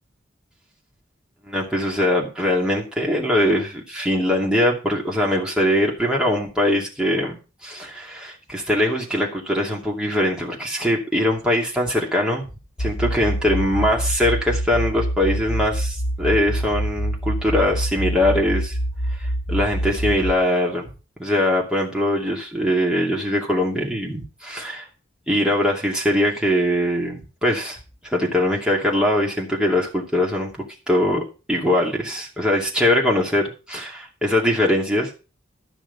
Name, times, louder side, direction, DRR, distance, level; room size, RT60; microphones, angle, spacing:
voice 1, 1.4-12.5 12.8-18.8 19.2-20.9 21.2-24.9 25.3-27.8 28.0-35.1, left 1 dB, 5° right, -2 dB, 2.6 m, -22 dB
sound 1, 12.8-20.3, right 1 dB, 40° left, 3.3 m, -25 dB
13.0 x 6.2 x 5.5 m, 0.32 s
head